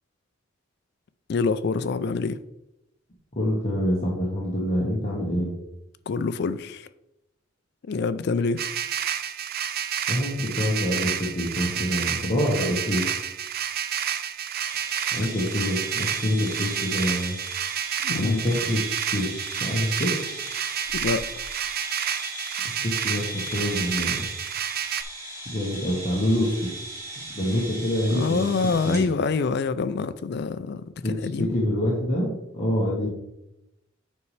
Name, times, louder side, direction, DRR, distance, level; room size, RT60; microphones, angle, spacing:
voice 1, 1.3-2.4 6.1-6.9 7.9-8.6 18.0-18.5 21.0-21.2 28.1-31.5, left 4 dB, 55° left, 0.4 m, -26 dB
voice 2, 3.3-5.5 10.1-13.1 15.1-17.4 18.1-18.8 19.1-20.3 22.8-24.3 25.4-27.0 27.3-28.5 28.8-29.0 31.0-33.1, equal, 35° left, 1.3 m, -26 dB
sound 1, 8.6-25.0, right 9 dB, 50° right, 0.4 m, -30 dB
sound 2, 14.6-29.1, right 1 dB, 15° right, 2.3 m, -38 dB
8.2 x 5.4 x 3.3 m
head